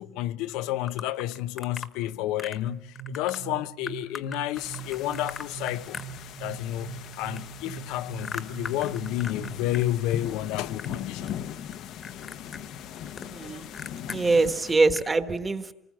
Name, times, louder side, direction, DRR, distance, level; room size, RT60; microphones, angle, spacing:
voice 1, 0.0-6.0 6.4-11.3 14.1-14.2, left 14 dB, 90° left, 0.9 m, -31 dB
sound 1, 0.9-1.9 2.4-2.7 3.0-3.4 3.9-6.6 6.9-9.9 10.1-11.0 11.3-11.8 12.0-14.2 14.6-14.7 14.9-15.1, left 5 dB, 25° left, 1.3 m, -40 dB
sound 2, 2.7-10.2, right 9 dB, 45° right, 2.0 m, -42 dB
sound 3, 4.5-14.8, left 9 dB, 55° left, 0.9 m, -40 dB
voice 2, 13.2-13.7 14.1-15.7, right 3 dB, 15° right, 1.2 m, -24 dB
29.0 x 20.0 x 7.3 m
cardioid pair, 165°, 0 cm